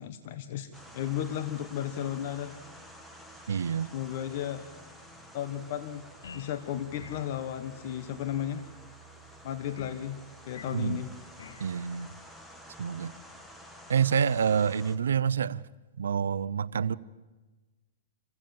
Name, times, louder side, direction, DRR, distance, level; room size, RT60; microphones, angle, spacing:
voice 1, 0.0-2.6 3.9-4.6 5.3-6.1 6.3-8.6 9.4-10.2 10.4-11.1, left 10 dB, 50° left, 1.2 m, -34 dB
sound 1, 0.7-15.0, equal, 5° left, 1.7 m, -50 dB
voice 2, 3.5-3.9 10.7-11.0 11.6-12.1 12.8-13.1 13.9-15.6 16.0-17.0, right 7 dB, 90° right, 0.6 m, -27 dB
sound 2, 6.2-6.6 7.0-7.3 9.8-10.0 10.5-10.9 11.4-11.7, left 5 dB, 85° left, 1.4 m, -46 dB
27.5 x 15.5 x 7.3 m
hypercardioid pair, 145°, 0 cm